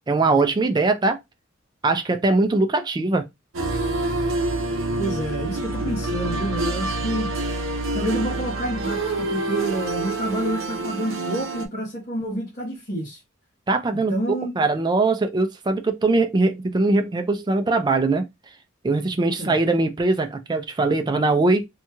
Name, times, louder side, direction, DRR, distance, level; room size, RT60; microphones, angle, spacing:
voice 1, 0.1-1.2 1.8-3.3 13.7-14.1 14.6-18.2 18.8-21.7, right 3 dB, 20° right, 0.3 m, -21 dB
sound 1, 3.5-11.7, right 2 dB, 65° right, 0.6 m, -27 dB
voice 2, 5.0-7.3 7.9-13.2 14.1-14.5 19.4-19.6, right 1 dB, 45° left, 1.1 m, -28 dB
2.9 x 2.7 x 2.3 m
head